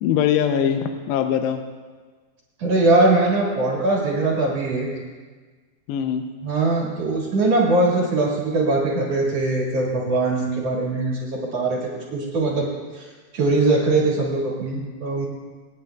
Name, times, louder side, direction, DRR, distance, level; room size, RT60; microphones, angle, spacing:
voice 1, 0.0-1.6 5.9-6.3, left 8 dB, 80° left, 6 dB, 2.7 m, -22 dB
voice 2, 2.6-4.9 6.4-11.8 12.1-12.7 13.0-13.1 13.3-15.3, right 2 dB, 50° right, -3 dB, 2.0 m, -21 dB
25.5 x 9.5 x 2.3 m, 1.4 s
omnidirectional pair, 5.1 m